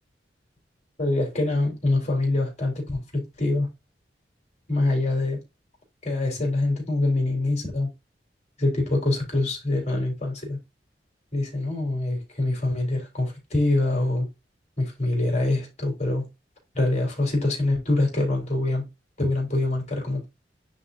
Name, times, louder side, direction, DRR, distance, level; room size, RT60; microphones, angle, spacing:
voice 1, 1.0-3.7 4.7-5.4 6.0-7.9 8.6-10.6 11.3-14.3 14.8-16.3 16.7-18.9 19.2-20.2, left 2 dB, 40° left, 3.9 m, -25 dB
9.9 x 4.1 x 2.7 m
head